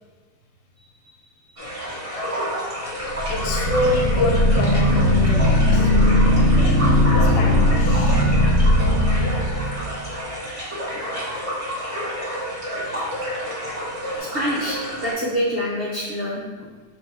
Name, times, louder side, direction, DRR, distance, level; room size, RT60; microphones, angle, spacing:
sound 1, 1.6-15.1, equal, 25° right, 1.0 m, -29 dB
sound 2, 3.1-10.1, left 1 dB, 60° left, 1.1 m, -18 dB
voice 1, 3.3-6.3 7.2-8.2, left 2 dB, 80° left, 2 dB, 1.3 m, -26 dB
voice 2, 14.2-16.7, equal, 65° right, -4 dB, 0.5 m, -27 dB
4.4 x 2.6 x 4.5 m, 1.4 s
omnidirectional pair, 1.8 m